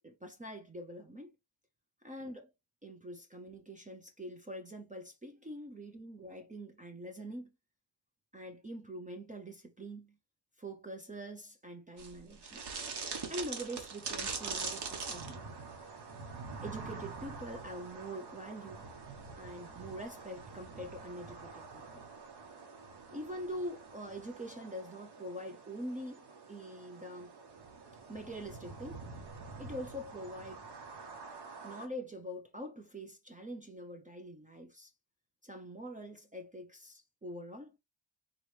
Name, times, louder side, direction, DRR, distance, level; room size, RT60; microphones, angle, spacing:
voice 1, 0.0-1.3 2.0-2.5 2.8-7.5 8.3-10.1 10.6-12.6 13.3-15.4 16.6-18.9 19.4-22.0 23.1-27.3 28.1-29.1 29.6-30.6 31.6-34.9 35.4-37.8, equal, 15° right, 0.5 m, -44 dB
sound 1, 12.0-31.9, right 4 dB, 55° right, 1.2 m, -45 dB
4.1 x 3.0 x 3.2 m
wide cardioid pair, 170°, 47 cm